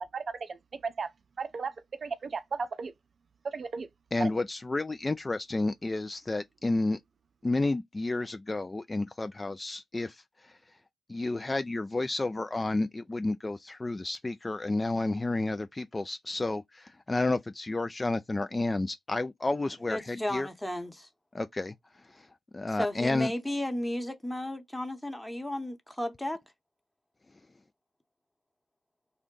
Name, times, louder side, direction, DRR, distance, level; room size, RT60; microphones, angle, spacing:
voice 1, 0.1-1.1 1.4-2.9 3.4-3.9 4.2-4.3, right 4 dB, 55° right, 0.4 m, -35 dB
voice 2, 4.1-7.0 7.4-10.2 11.1-20.5 21.3-21.7 22.5-23.3, left 2 dB, 30° left, 0.3 m, -31 dB
voice 3, 19.6-21.1 22.7-26.4, left 1 dB, 5° left, 1.0 m, -34 dB
2.5 x 2.1 x 3.7 m
hypercardioid pair, 40°, 0 cm